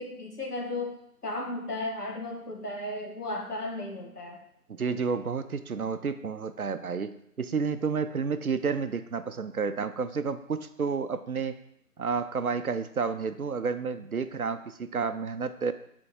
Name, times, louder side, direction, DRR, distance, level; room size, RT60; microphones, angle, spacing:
voice 1, 0.0-4.4, left 2 dB, 75° left, 0 dB, 1.6 m, -35 dB
voice 2, 4.7-7.1 7.4-11.6 12.0-15.7, right 5 dB, 65° right, 11 dB, 0.6 m, -30 dB
8.2 x 4.4 x 3.0 m, 0.74 s
figure-of-eight pair, 165°, 47 cm